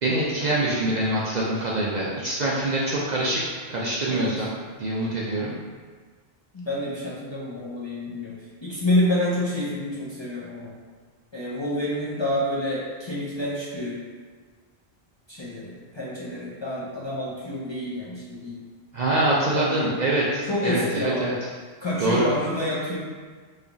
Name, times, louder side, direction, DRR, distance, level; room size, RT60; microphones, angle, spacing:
voice 1, 0.0-3.4 3.7-4.5 4.8-5.5 18.9-21.3 22.0-22.3, right 1 dB, 55° right, -6 dB, 0.5 m, -24 dB
voice 2, 6.5-8.4 8.6-10.7 11.3-14.0 15.3-18.6 19.2-19.9 20.4-21.3 21.8-23.0, left 1 dB, 35° left, -8 dB, 0.5 m, -28 dB
3.2 x 2.3 x 3.8 m, 1.5 s
omnidirectional pair, 1.1 m